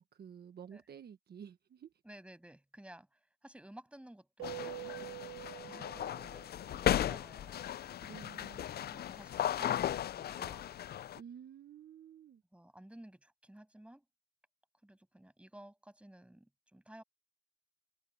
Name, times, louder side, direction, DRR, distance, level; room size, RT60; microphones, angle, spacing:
voice 1, 0.0-1.9 8.0-8.7 11.2-12.4, right 8 dB, 55° right, 1.4 m, -51 dB
voice 2, 2.0-5.1 5.6-7.8 8.9-10.7 12.5-14.0 14.8-17.0, right 1 dB, 5° right, 7.2 m, -55 dB
sound 1, 4.4-11.2, left 11 dB, 55° left, 0.5 m, -36 dB
Keyboard (musical), 4.4-6.9, right 24 dB, 85° right, 1.4 m, -46 dB
cardioid pair, 90°, 20 cm